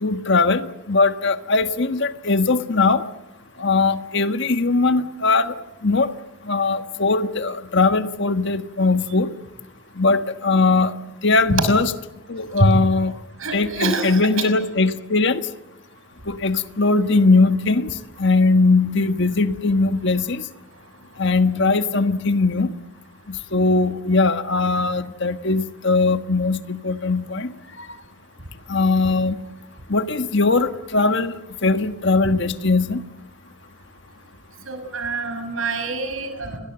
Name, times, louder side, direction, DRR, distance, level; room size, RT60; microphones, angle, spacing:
voice 1, 0.0-3.0 3.6-5.5 5.8-6.1 6.4-9.3 10.0-10.9 11.2-11.9 12.3-13.1 13.5-15.4 16.3-17.9 18.2-20.4 21.2-22.7 23.3-27.9 28.7-29.4 29.9-31.4 31.6-33.0, left 3 dB, 55° left, 10 dB, 1.5 m, -20 dB
voice 2, 13.4-14.5 34.7-36.6, right 2 dB, 70° right, 7 dB, 6.1 m, -25 dB
29.0 x 22.0 x 7.8 m, 0.93 s
head